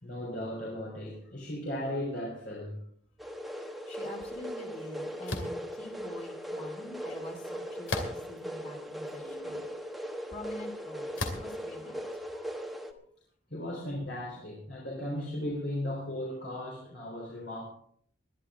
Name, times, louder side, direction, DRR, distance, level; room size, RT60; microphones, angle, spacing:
voice 1, 0.0-2.8 9.2-9.8 13.5-17.7, left 1 dB, 60° left, -2 dB, 3.5 m, -36 dB
sound 1, 3.2-12.9, equal, ahead, 1.1 m, -39 dB
voice 2, 3.6-9.6 10.3-12.0 12.3-12.5 13.5-13.6, left 1 dB, 35° left, 0 dB, 2.9 m, -46 dB
sound 2, 5.3-5.6 7.9-8.4 9.1-9.2 11.2-11.6, left 2 dB, 80° left, 2.4 m, -34 dB
21.0 x 11.5 x 3.7 m, 0.63 s
head